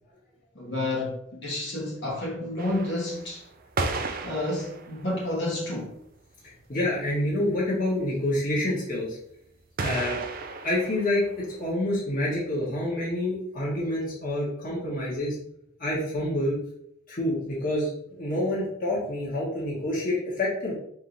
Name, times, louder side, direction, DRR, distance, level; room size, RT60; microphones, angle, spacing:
voice 1, 0.5-3.4 4.2-5.9, left 1 dB, 60° left, 1.4 m, -30 dB
sound 1, 2.6-5.4 6.0-6.1 6.3-6.4 6.6-6.7 7.0-7.4 9.8-11.7, right 3 dB, 45° right, 0.4 m, -34 dB
voice 2, 6.4-9.2 9.8-10.2 10.6-15.4 15.8-16.6 17.1-17.9 18.2-20.7, left 1 dB, 45° left, 1.3 m, -27 dB
4.4 x 3.5 x 2.6 m
head